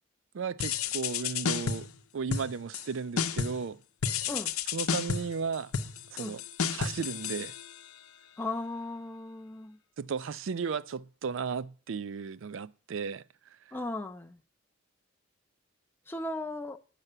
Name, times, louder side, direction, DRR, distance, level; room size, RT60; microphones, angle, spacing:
voice 1, 0.3-3.8 4.7-5.7 6.1-7.5 10.0-13.2, right 5 dB, 60° right, 0.4 m, -35 dB
sound 1, 0.6-2.0 2.3-2.9 3.2-3.7 4.0-8.0, left 6 dB, 85° left, 0.7 m, -32 dB
voice 2, 8.4-9.8 13.7-14.4 16.1-16.8, left 2 dB, 10° left, 0.4 m, -36 dB
9.8 x 6.0 x 6.6 m
head